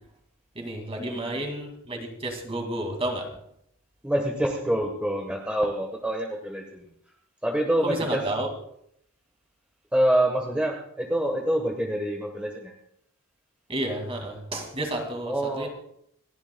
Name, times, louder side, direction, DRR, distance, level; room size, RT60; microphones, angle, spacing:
voice 1, 0.6-3.3 7.8-8.5 13.7-15.7, right 1 dB, 25° right, 3 dB, 2.3 m, -31 dB
voice 2, 1.1-1.4 4.0-6.9 7.4-8.3 9.9-12.7 15.3-15.7, right 1 dB, 5° right, 1 dB, 1.2 m, -26 dB
28.0 x 11.5 x 2.3 m, 0.73 s
head